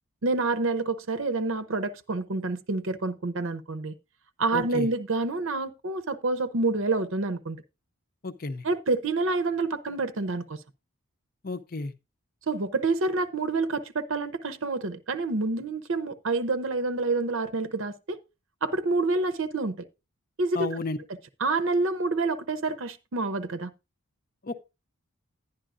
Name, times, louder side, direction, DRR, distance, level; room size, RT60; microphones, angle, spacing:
voice 1, 0.2-3.9 4.4-7.6 8.6-10.6 12.5-18.2 18.6-19.7 20.4-20.8 21.4-23.7, right 3 dB, 60° right, 0.7 m, -28 dB
voice 2, 4.5-4.9 8.2-8.6 11.4-11.9 20.5-21.0 24.4-24.7, left 3 dB, 40° left, 0.7 m, -32 dB
11.0 x 10.5 x 2.5 m
head